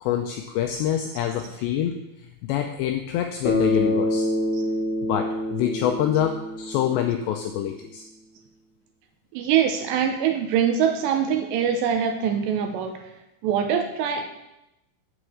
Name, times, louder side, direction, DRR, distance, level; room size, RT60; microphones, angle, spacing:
voice 1, 0.0-1.9 2.4-4.3 5.0-8.0, left 10 dB, 90° left, 4 dB, 2.5 m, -26 dB
Bass guitar, 3.4-7.7, left 1 dB, 35° left, 3.3 m, -26 dB
voice 2, 9.3-13.0 13.4-14.2, right 8 dB, 80° right, 5 dB, 2.5 m, -23 dB
8.1 x 6.4 x 7.9 m, 0.89 s
omnidirectional pair, 5.8 m